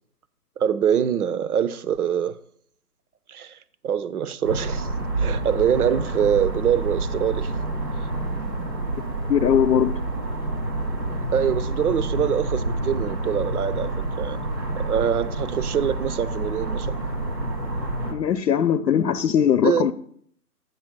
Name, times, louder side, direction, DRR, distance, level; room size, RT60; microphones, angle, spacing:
voice 1, 0.6-2.3 3.3-3.6 3.8-4.9 5.2-7.5 11.3-14.5 14.7-17.0 19.6-19.9, right 8 dB, 65° right, 0.7 m, -24 dB
sound 1, 4.4-18.1, right 2 dB, 90° right, 2.7 m, -28 dB
voice 2, 9.3-9.9 18.1-19.9, left 9 dB, 80° left, 0.7 m, -20 dB
9.3 x 4.5 x 6.0 m
figure-of-eight pair, 160°, 48 cm